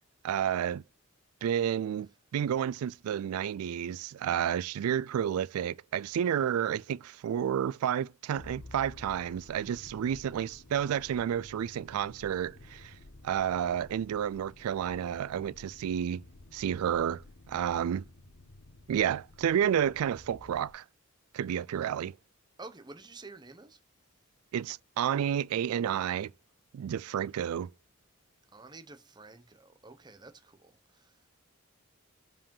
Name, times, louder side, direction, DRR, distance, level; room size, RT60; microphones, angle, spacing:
voice 1, 0.2-0.8 1.4-12.9 13.2-16.2 16.5-18.0 18.9-20.8 21.3-22.2 24.5-26.3 26.7-27.7, right 9 dB, 85° right, 0.3 m, -31 dB
Motor vehicle (road), 8.3-20.7, left 2 dB, 65° left, 1.3 m, -53 dB
voice 2, 22.6-23.8 28.5-31.1, right 3 dB, 20° right, 0.8 m, -50 dB
5.1 x 4.9 x 5.4 m
head